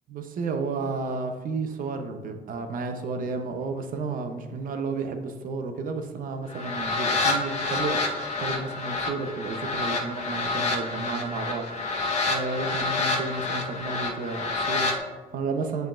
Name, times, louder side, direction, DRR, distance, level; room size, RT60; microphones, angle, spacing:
voice 1, 0.1-8.0 8.4-11.9 12.3-15.9, right 4 dB, 55° right, 7 dB, 0.8 m, -32 dB
sound 1, 6.5-15.0, left 3 dB, 40° left, 1.1 m, -28 dB
7.6 x 5.2 x 2.5 m, 1.2 s
cardioid pair, 110°, 17 cm